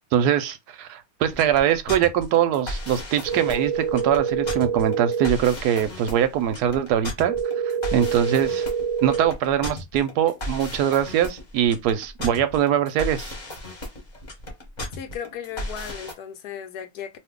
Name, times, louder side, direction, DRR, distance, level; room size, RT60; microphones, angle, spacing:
voice 1, 0.1-7.3 7.9-8.7 9.0-13.3, right 9 dB, 90° right, 1.2 m, -22 dB
sound 1, 1.3-16.1, left 1 dB, 30° left, 1.0 m, -35 dB
sound 2, 3.3-5.3 7.3-9.3, right 7 dB, 30° right, 0.7 m, -26 dB
voice 2, 14.9-17.2, left 8 dB, 80° left, 1.2 m, -36 dB
2.6 x 2.6 x 3.6 m
omnidirectional pair, 1.7 m